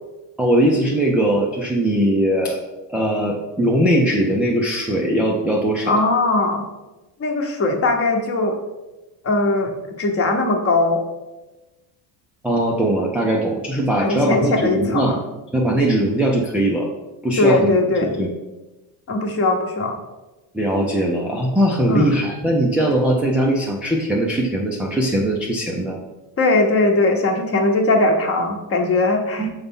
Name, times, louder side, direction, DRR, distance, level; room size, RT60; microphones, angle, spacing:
voice 1, 0.4-2.6 2.9-6.0 12.4-15.2 15.5-16.9 17.2-17.7 18.2-18.3 20.5-26.0 29.4-29.5, right 1 dB, 5° right, -2 dB, 0.3 m, -20 dB
voice 2, 5.9-6.6 7.2-8.6 9.2-9.7 10.0-11.0 13.9-15.2 17.4-18.1 19.1-20.0 21.9-22.1 26.4-29.5, left 2 dB, 30° left, 3 dB, 0.9 m, -19 dB
6.9 x 4.0 x 3.6 m, 1.1 s
cardioid pair, 145°, 45 cm